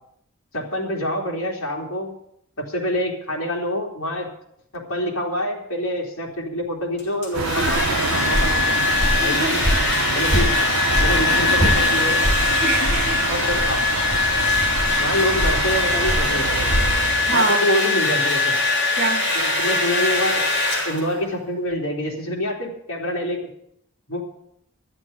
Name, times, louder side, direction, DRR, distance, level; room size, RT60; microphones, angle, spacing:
voice 1, 0.5-2.1 2.6-4.3 4.7-8.8 9.2-9.6 10.1-10.6 11.0-12.3 13.3-13.9 15.0-16.9 17.3-18.6 19.4-20.5 20.8-23.4 24.1-24.2, left 1 dB, 85° left, -1 dB, 3.3 m, -26 dB
Domestic sounds home sounds, 7.0-21.3, left 3 dB, 55° left, 4.4 m, -22 dB
sound 1, 7.3-17.4, right 5 dB, 85° right, 0.8 m, -27 dB
footsteps barefoot parquet, 7.6-11.8 12.2-16.9, equal, 5° left, 7.6 m, -24 dB
voice 2, 7.6-7.9 9.2-9.8 12.5-13.2 17.3-17.9 19.0-19.3, right 3 dB, 50° right, 7 dB, 1.7 m, -26 dB
13.0 x 7.5 x 9.3 m, 0.72 s
head